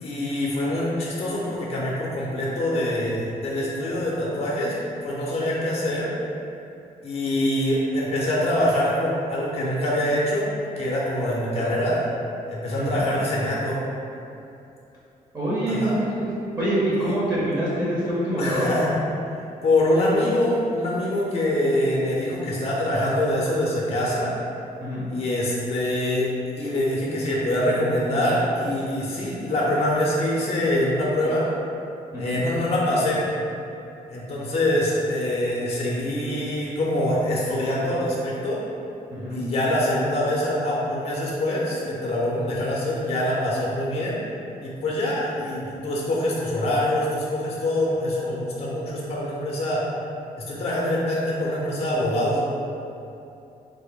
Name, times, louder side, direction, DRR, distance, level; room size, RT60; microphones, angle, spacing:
voice 1, 0.0-4.7 5.0-6.1 7.0-10.5 10.8-12.0 12.5-13.8 15.7-16.0 17.0-17.1 18.4-19.0 19.6-24.3 25.1-26.3 26.6-31.4 32.2-33.3 34.1-38.6 39.3-44.2 44.6-49.8 50.5-52.4, left 1 dB, 40° left, -5 dB, 0.5 m, -24 dB
voice 2, 15.3-16.3 16.6-18.7 24.8-25.0 32.1-32.4 39.1-39.4, right 1 dB, 25° right, -9 dB, 0.7 m, -25 dB
3.3 x 2.1 x 3.6 m, 2.7 s
wide cardioid pair, 150°, 15 cm